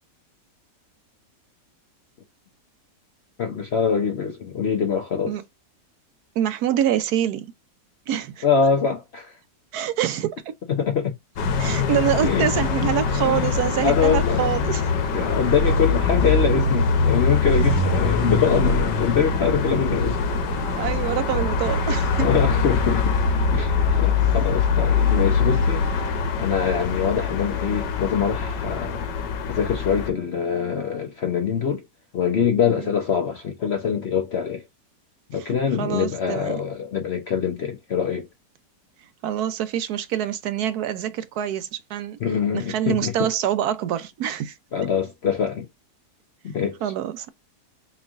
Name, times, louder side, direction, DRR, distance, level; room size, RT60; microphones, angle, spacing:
voice 1, 3.4-5.4 8.4-9.4 10.7-11.2 12.2-12.5 13.2-13.5 13.8-14.5 15.1-20.2 22.2-23.2 23.5-25.9 26.4-29.0 29.5-31.8 32.1-34.7 35.3-38.3 42.2-43.3 44.7-45.7 46.4-46.8, left 7 dB, 55° left, 0.7 m, -24 dB
voice 2, 6.4-7.5 8.1-8.4 9.7-10.5 11.6-14.9 20.7-22.3 25.1-25.2 32.7-32.9 35.4-36.6 39.2-42.2 42.5-44.6 46.8-47.3, right 10 dB, 70° right, 1.1 m, -26 dB
sound 1, 11.4-30.1, left 5 dB, 80° left, 1.4 m, -23 dB
sound 2, 12.3-26.3, right 1 dB, 55° right, 1.1 m, -35 dB
4.4 x 3.2 x 2.4 m
omnidirectional pair, 1.8 m